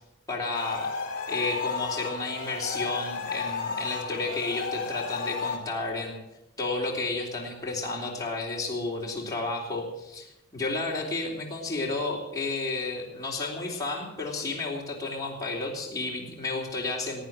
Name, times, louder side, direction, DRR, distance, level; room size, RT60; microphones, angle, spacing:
voice 1, 0.3-0.9 1.3-6.2 6.6-10.3 10.5-17.3, left 3 dB, 15° left, -3 dB, 3.4 m, -32 dB
sound 1, 0.5-5.6, left 5 dB, 40° left, 2.8 m, -33 dB
18.0 x 9.0 x 7.6 m, 0.96 s
head